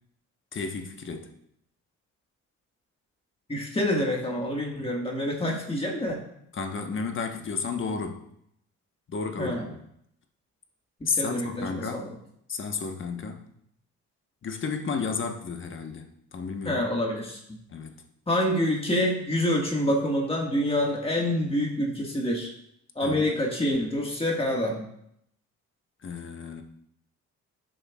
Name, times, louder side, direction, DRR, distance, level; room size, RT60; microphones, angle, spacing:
voice 1, 0.5-1.3 6.5-8.2 9.1-9.8 11.1-12.1 12.5-13.4 14.4-16.9 17.7-17.9 23.0-23.2 26.0-26.6, left 5 dB, 40° left, 5 dB, 1.1 m, -32 dB
voice 2, 3.5-6.2 9.4-9.7 11.2-12.1 16.6-17.6 18.3-22.5 22.9-24.9, left 1 dB, 20° left, -1 dB, 1.6 m, -27 dB
11.5 x 6.5 x 2.3 m, 0.73 s
cardioid pair, 90°, 30 cm